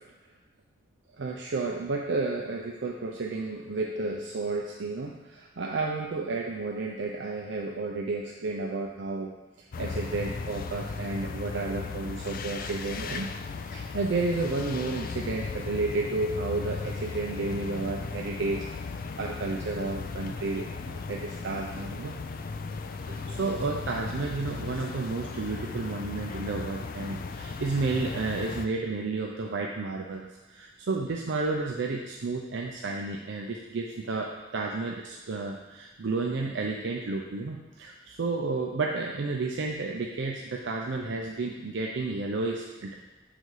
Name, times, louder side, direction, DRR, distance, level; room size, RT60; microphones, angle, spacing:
voice 1, 1.2-13.3 13.6-18.7 19.2-22.1 23.0-42.9, right 3 dB, 65° right, 0 dB, 0.5 m, -32 dB
sound 1, 9.7-28.7, left 4 dB, 45° left, 0.4 m, -36 dB
6.6 x 4.0 x 4.7 m, 1.1 s
head